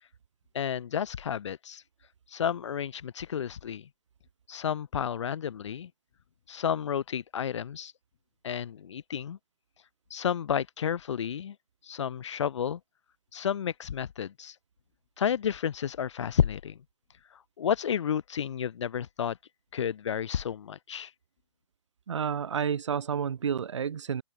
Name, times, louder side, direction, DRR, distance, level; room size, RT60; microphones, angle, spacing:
voice 1, 0.5-1.8 2.3-3.9 4.5-5.9 6.5-7.9 8.4-9.4 10.1-11.6 11.8-12.8 13.3-14.5 15.2-16.8 17.6-19.4 19.7-21.1, left 8 dB, 75° left, 0.7 m, -31 dB
voice 2, 22.1-24.2, right 7 dB, 75° right, 1.8 m, -30 dB
open air
hypercardioid pair, 155°, 15 cm